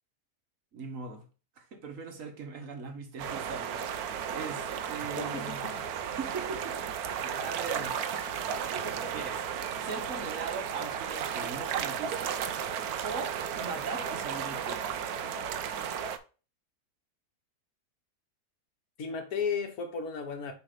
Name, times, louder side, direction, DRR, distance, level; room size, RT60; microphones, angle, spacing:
voice 1, 0.7-1.3 1.6-5.6 6.2-8.0 8.7-9.4 9.8-12.4 13.0-14.9, right 4 dB, 60° right, 1.5 m, -40 dB
sound 1, 3.2-16.2, right 8 dB, 80° right, 1.2 m, -34 dB
voice 2, 5.0-6.2 19.0-20.5, left 5 dB, 75° left, 1.7 m, -35 dB
7.0 x 3.3 x 4.9 m
omnidirectional pair, 1.6 m